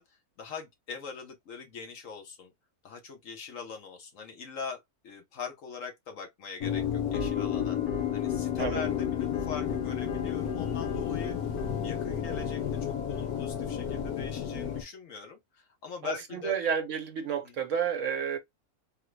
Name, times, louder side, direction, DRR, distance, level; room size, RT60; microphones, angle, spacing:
voice 1, 0.0-2.5 2.8-7.8 8.1-11.4 11.8-16.6 17.4-17.5, left 6 dB, 65° left, 1.3 m, -42 dB
sound 1, 6.6-14.8, left 8 dB, 90° left, 1.3 m, -31 dB
voice 2, 8.6-8.9 16.0-18.4, right 7 dB, 65° right, 1.0 m, -31 dB
3.7 x 2.0 x 3.1 m
omnidirectional pair, 1.5 m